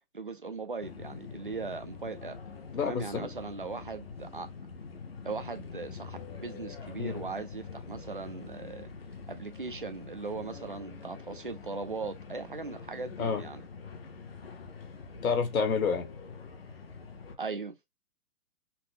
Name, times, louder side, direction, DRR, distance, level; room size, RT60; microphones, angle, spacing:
voice 1, 0.1-2.4 2.8-4.5 5.2-8.9 9.3-13.6 17.4-17.8, right 4 dB, 40° right, 0.4 m, -39 dB
sound 1, 0.8-17.4, left 5 dB, 40° left, 0.8 m, -45 dB
voice 2, 2.7-3.3 7.0-7.2 13.2-13.4 15.2-16.1, left 5 dB, 65° left, 1.5 m, -29 dB
5.8 x 2.1 x 3.4 m
hypercardioid pair, 175°, 45 cm